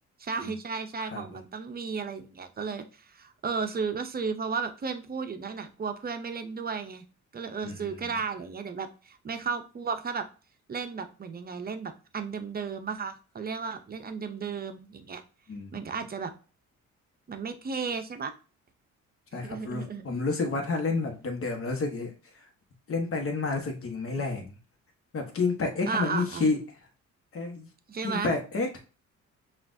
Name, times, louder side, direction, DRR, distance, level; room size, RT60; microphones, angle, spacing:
voice 1, 0.2-7.0 7.3-10.2 10.7-15.2 15.7-16.3 17.3-18.3 19.4-20.1 25.9-26.5 27.9-28.3, right 5 dB, 30° right, 8 dB, 0.6 m, -34 dB
voice 2, 1.1-1.4 7.6-8.1 15.5-15.8 19.3-22.1 22.4-22.5 22.9-24.5 25.1-26.6 27.3-27.7 28.0-28.8, left 3 dB, 45° left, 3 dB, 1.2 m, -30 dB
5.7 x 2.5 x 2.6 m, 0.35 s
cardioid pair, 90°, 30 cm